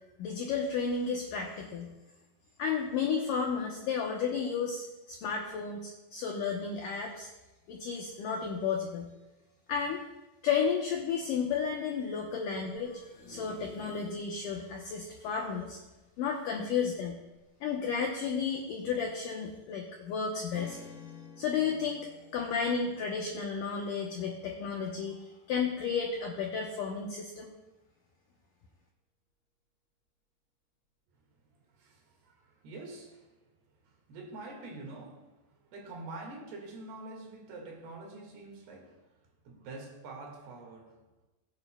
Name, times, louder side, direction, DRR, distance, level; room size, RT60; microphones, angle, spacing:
voice 1, 0.2-1.9 2.6-7.3 7.7-9.1 9.7-10.0 10.4-15.8 16.2-17.2 17.6-20.8 21.4-27.5, left 6 dB, 80° left, 0 dB, 1.9 m, -33 dB
sound 1, 12.8-14.3 14.7-14.8 15.0-15.1 16.3-17.2 17.9-18.0, left 2 dB, 45° left, 3.0 m, -52 dB
Strum, 20.5-24.8, left 5 dB, 25° left, 2.3 m, -51 dB
voice 2, 31.8-33.3 33.8-39.0 39.5-41.0, right 2 dB, 70° right, 0 dB, 3.7 m, -46 dB
20.5 x 9.3 x 2.2 m, 1.1 s
omnidirectional pair, 5.0 m